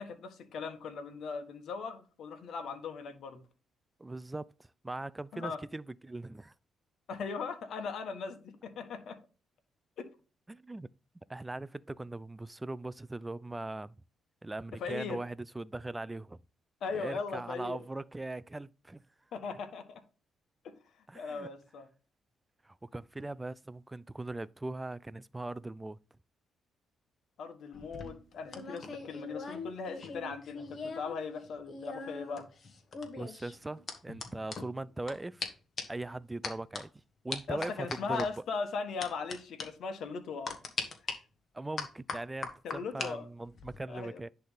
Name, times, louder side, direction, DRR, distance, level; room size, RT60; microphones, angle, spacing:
voice 1, 0.0-3.4 5.3-5.6 7.1-9.2 14.8-15.2 16.8-17.8 19.3-20.0 20.6-20.7 21.1-21.9 27.4-32.4 37.5-40.6 42.6-43.3 43.9-44.2, left 5 dB, 70° left, 1.6 m, -39 dB
voice 2, 4.0-6.5 10.5-10.9 11.3-13.9 14.4-16.4 16.9-19.0 21.1-21.5 22.6-26.0 33.2-35.5 35.9-36.9 37.2-38.3 41.5-44.3, right 2 dB, 15° right, 0.4 m, -40 dB
sound 1, 27.7-31.1 31.4-35.1 35.4-35.5 35.8-36.0 36.4-36.8 37.3-38.3 39.0-39.3 39.6-39.7 40.5-41.1 41.8-43.1 43.4-43.8, left 4 dB, 45° left, 1.8 m, -40 dB
10.5 x 3.5 x 4.0 m
cardioid pair, 90°, 0 cm